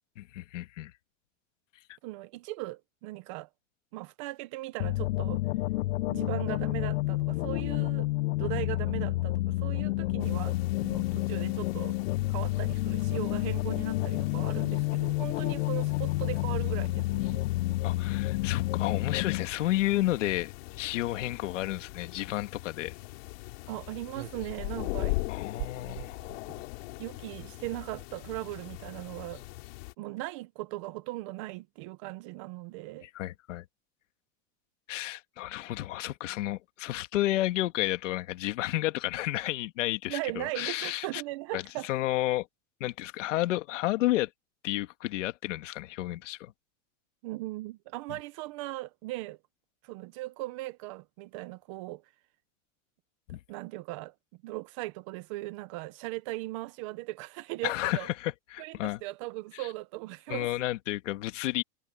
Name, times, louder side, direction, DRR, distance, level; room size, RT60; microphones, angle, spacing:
voice 1, 0.2-0.9 17.8-22.9 25.3-26.2 33.0-33.6 34.9-41.2 41.5-42.5 42.8-44.3 44.6-46.5 53.3-53.4 57.6-59.0 59.5-59.6 60.3-61.6, left 16 dB, 70° left, 2.1 m, -31 dB
voice 2, 2.0-3.5 3.9-5.4 6.1-8.1 8.4-12.0 12.3-17.4 23.7-25.2 27.0-29.4 30.0-33.1 40.1-42.0 47.2-49.4 49.8-52.0 53.5-54.1 54.4-58.1 58.6-60.5, right 19 dB, 25° right, 0.4 m, -38 dB
sound 1, 4.8-19.5, left 18 dB, 90° left, 0.5 m, -29 dB
sound 2, 10.2-29.9, left 23 dB, 50° left, 3.4 m, -41 dB
sound 3, 24.1-26.7 27.9-28.0 28.2-28.3 28.4-28.8 29.2-29.5, right 18 dB, 60° right, 1.0 m, -45 dB
supercardioid pair, 170°, 38 cm